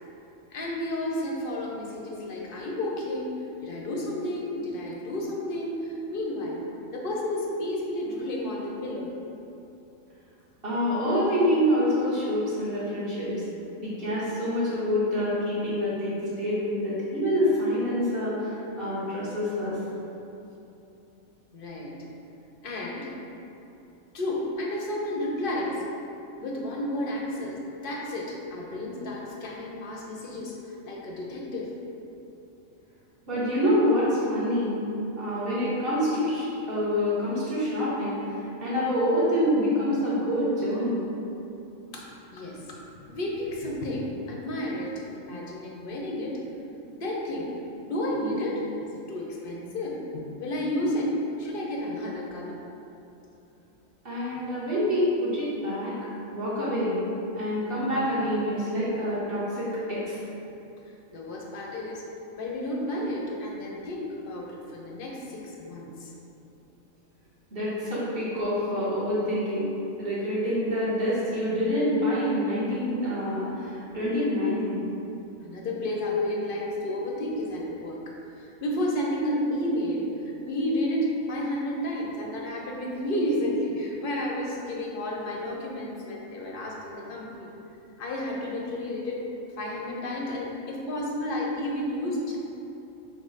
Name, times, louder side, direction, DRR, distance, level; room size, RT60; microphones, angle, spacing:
voice 1, 0.5-3.3 3.6-6.7 6.9-9.1 21.5-21.9 22.6-23.1 24.1-25.8 26.4-31.8 41.9-46.4 46.9-47.5 47.8-48.7 49.1-52.6 54.3-54.4 61.1-62.0 62.4-66.1 75.4-78.0 78.4-87.5 88.0-89.3 89.6-92.4, left 1 dB, 55° left, -2 dB, 0.6 m, -31 dB
voice 2, 10.6-13.3 13.8-19.8 33.3-34.8 35.2-41.0 54.0-56.0 56.3-57.0 57.4-60.2 67.5-69.7 70.0-74.8, equal, 45° right, -10 dB, 1.2 m, -26 dB
5.9 x 2.0 x 3.9 m, 2.9 s
omnidirectional pair, 1.4 m